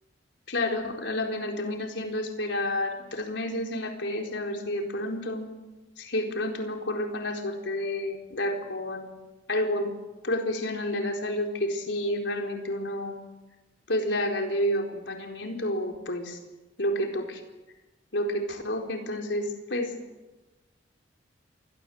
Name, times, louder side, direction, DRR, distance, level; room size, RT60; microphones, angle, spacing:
voice 1, 0.5-5.5 6.0-9.0 9.5-9.9 10.2-13.2 13.9-16.4 16.8-17.4 18.1-19.9, left 1 dB, 70° left, 3 dB, 4.2 m, -30 dB
27.0 x 22.5 x 7.9 m, 1.1 s
head